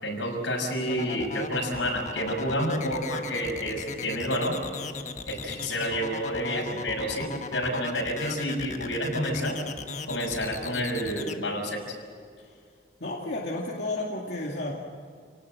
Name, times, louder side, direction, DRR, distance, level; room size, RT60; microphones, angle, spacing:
voice 1, 0.0-4.6 5.3-9.6 10.1-11.8, equal, 85° left, 2 dB, 6.1 m, -29 dB
sound 1, 0.9-11.3, left 4 dB, 40° left, 1.3 m, -37 dB
voice 2, 13.0-14.7, left 2 dB, 60° left, -3 dB, 2.4 m, -32 dB
29.5 x 18.5 x 7.7 m, 2.2 s
head